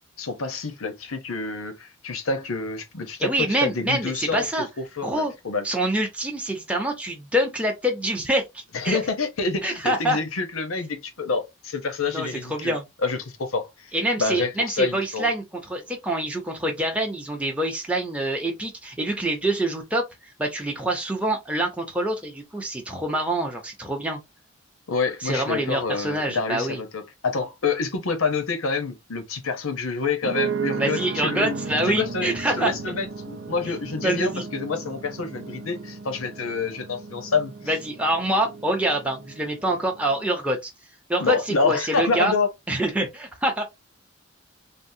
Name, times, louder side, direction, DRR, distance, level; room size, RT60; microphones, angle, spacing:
voice 1, 0.2-4.5 4.8-5.7 8.7-12.8 13.0-13.9 14.2-15.3 24.9-31.6 31.9-32.3 32.6-37.5 41.2-42.5, left 4 dB, 90° left, 0.8 m, -27 dB
voice 2, 3.2-4.7 5.0-5.3 5.6-9.0 9.6-10.2 12.1-12.8 13.9-20.0 20.4-24.2 25.2-26.8 30.8-32.7 34.0-34.5 37.7-40.7 41.1-42.3 42.7-43.6, right 1 dB, 5° right, 0.6 m, -26 dB
sound 1, 30.2-40.2, right 4 dB, 60° right, 0.4 m, -34 dB
3.5 x 2.0 x 2.7 m
head